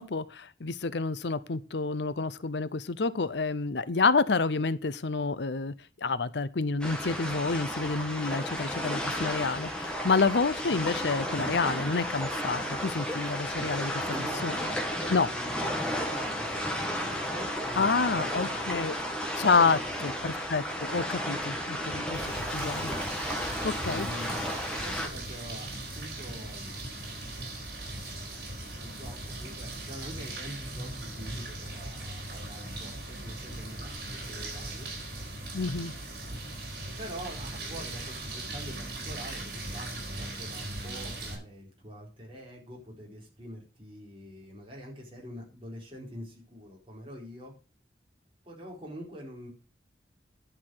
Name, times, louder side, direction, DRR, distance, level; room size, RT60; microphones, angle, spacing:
voice 1, 0.0-5.7 6.0-13.9 14.4-14.6 15.1-15.3 17.8-18.9 19.4-22.2 22.5-22.9 23.6-24.1 35.5-35.9, left 4 dB, 75° left, 0.7 m, -28 dB
sound 1, 6.8-25.1, equal, 5° left, 1.9 m, -33 dB
voice 2, 14.0-18.8 19.6-19.9 20.2-20.5 23.5-25.7 26.0-26.8 27.4-27.5 28.8-34.9 37.0-47.5 48.4-49.5, equal, 30° right, 4.4 m, -45 dB
sound 2, 22.1-41.3, right 2 dB, 60° right, 4.7 m, -39 dB
11.0 x 5.9 x 6.3 m
head